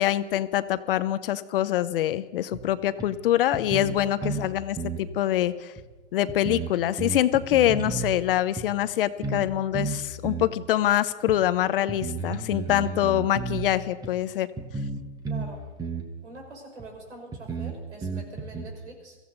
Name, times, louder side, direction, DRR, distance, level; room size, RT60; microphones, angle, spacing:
voice 1, 0.0-5.7 6.1-14.5, left 12 dB, 55° left, 15 dB, 0.8 m, -25 dB
sound 1, 2.5-2.6 3.0-3.1 3.5-4.5 4.8-5.0 5.8-5.9 6.3-8.1 8.6-8.7 9.2-9.5 9.7-10.5 11.3-11.4 11.9-13.6 14.0-14.1 14.6-15.5 15.8-16.1 16.8-16.9 17.3-18.6, right 4 dB, 10° right, 1.4 m, -32 dB
voice 2, 15.3-15.7 16.2-19.2, right 2 dB, 90° right, 1 dB, 5.7 m, -44 dB
22.5 x 15.0 x 4.0 m, 1.2 s
hypercardioid pair, 135°, 34 cm